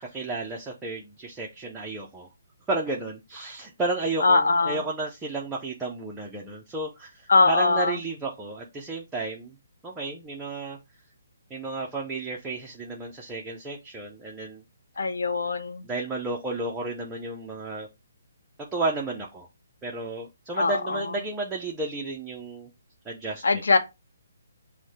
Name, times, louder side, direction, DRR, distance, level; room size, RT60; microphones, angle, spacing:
voice 1, 0.0-2.3 2.7-9.6 9.8-10.8 11.5-14.6 15.8-17.9 18.7-19.5 19.8-22.7 23.0-23.6, right 2 dB, 10° right, 0.6 m, -32 dB
voice 2, 4.2-4.8 7.3-8.0 15.0-15.9 20.6-21.0 23.4-23.8, left 3 dB, 80° left, 0.8 m, -22 dB
4.6 x 2.2 x 4.1 m
hypercardioid pair, 155°, 0 cm